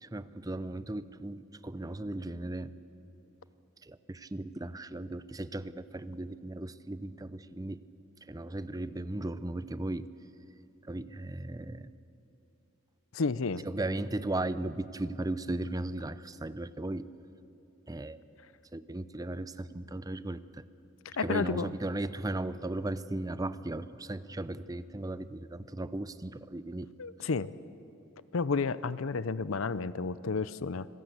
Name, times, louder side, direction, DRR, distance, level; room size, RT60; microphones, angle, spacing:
voice 1, 0.0-2.7 3.8-7.8 8.2-10.1 10.8-11.9 13.6-17.1 17.9-18.2 18.7-20.6 21.2-26.9, right 2 dB, 15° right, 15 dB, 0.6 m, -36 dB
voice 2, 13.1-13.7 21.0-21.7 27.0-27.5 28.3-30.9, left 4 dB, 70° left, 17 dB, 0.6 m, -31 dB
26.5 x 16.5 x 8.1 m, 2.9 s
head